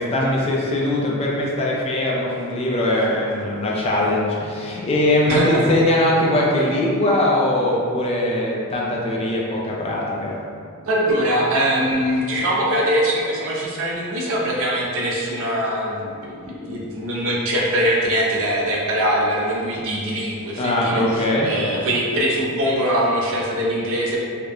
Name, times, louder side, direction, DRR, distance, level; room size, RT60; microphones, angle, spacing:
voice 1, 0.0-10.3 20.6-21.5, left 1 dB, 30° left, -4 dB, 0.3 m, -21 dB
voice 2, 5.3-5.8 10.9-24.2, equal, 65° right, -3 dB, 0.5 m, -22 dB
2.9 x 2.0 x 2.3 m, 2.3 s
head